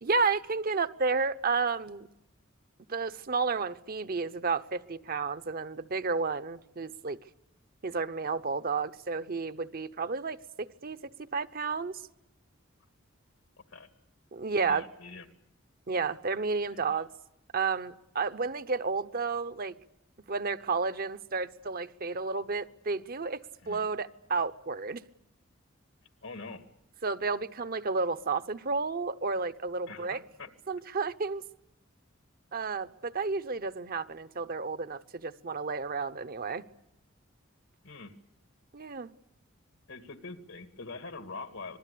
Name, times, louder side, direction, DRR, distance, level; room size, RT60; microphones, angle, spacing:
voice 1, 0.0-2.1 2.9-7.2 7.8-11.0 11.3-12.0 14.3-14.9 15.9-17.1 17.5-19.7 20.3-25.0 27.0-30.2 30.7-31.4 32.5-36.6 38.7-39.1, right 4 dB, 50° right, 12 dB, 0.9 m, -31 dB
voice 2, 14.4-15.3 16.7-16.8 23.6-23.8 26.2-26.6 29.9-30.5 37.8-38.1 39.9-41.8, left 3 dB, 85° left, 8 dB, 2.5 m, -44 dB
26.5 x 20.5 x 8.5 m, 0.84 s
head